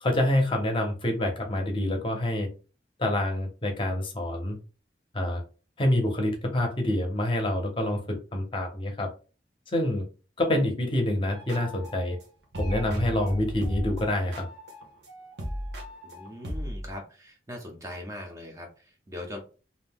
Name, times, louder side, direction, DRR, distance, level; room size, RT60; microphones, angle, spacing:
voice 1, 0.0-2.5 3.0-4.6 5.1-5.4 5.8-9.1 9.7-10.0 10.4-12.2 12.6-14.5, left 1 dB, 30° left, 3 dB, 0.6 m, -27 dB
sound 1, 11.3-12.2 12.5-16.9, equal, 75° right, 0.8 m, -35 dB
voice 2, 16.0-19.4, left 1 dB, 15° right, 1 dB, 0.5 m, -40 dB
2.5 x 2.1 x 3.4 m, 0.34 s
head